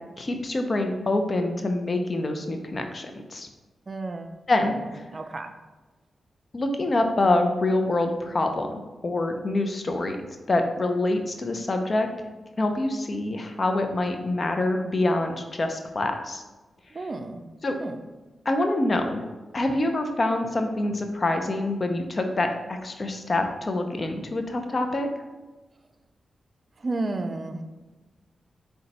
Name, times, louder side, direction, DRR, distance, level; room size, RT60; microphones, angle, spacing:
voice 1, 0.2-3.5 4.5-5.0 6.5-10.2 10.5-12.1 12.6-16.4 17.6-17.7 18.5-19.2 19.5-25.1, left 2 dB, 45° left, 5 dB, 0.5 m, -26 dB
voice 2, 3.9-4.8 5.1-5.5 16.9-17.4 17.8-18.0 26.8-27.6, right 2 dB, 50° right, 7 dB, 0.4 m, -32 dB
3.8 x 2.2 x 4.1 m, 1.2 s
supercardioid pair, 40°, 0 cm